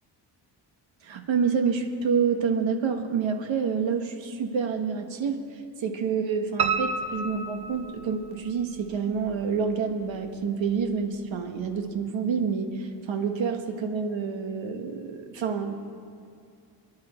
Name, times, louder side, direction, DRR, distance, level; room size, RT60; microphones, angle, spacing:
voice 1, 1.0-5.4 5.8-15.7, right 6 dB, 90° right, 6 dB, 1.4 m, -28 dB
Piano, 6.6-8.5 8.9-9.8 10.1-10.2 10.7-10.8 11.0-11.1, right 5 dB, 60° right, 1.0 m, -30 dB
26.5 x 10.5 x 4.4 m, 2.5 s
cardioid pair, 80°, 44 cm